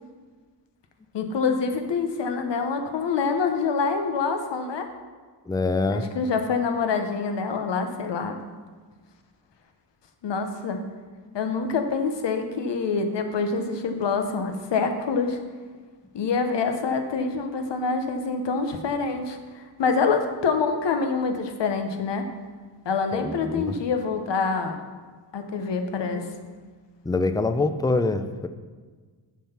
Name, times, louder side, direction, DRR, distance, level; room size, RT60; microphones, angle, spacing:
voice 1, 1.1-4.9 5.9-8.4 10.2-10.8 11.3-15.4 16.1-22.3 22.8-24.8 25.3-26.2, left 5 dB, 70° left, 6 dB, 1.0 m, -26 dB
voice 2, 5.5-6.0 23.1-23.7 27.1-28.5, left 3 dB, 10° left, 10 dB, 0.4 m, -25 dB
7.3 x 5.6 x 5.8 m, 1.5 s
cardioid pair, 75°, 45 cm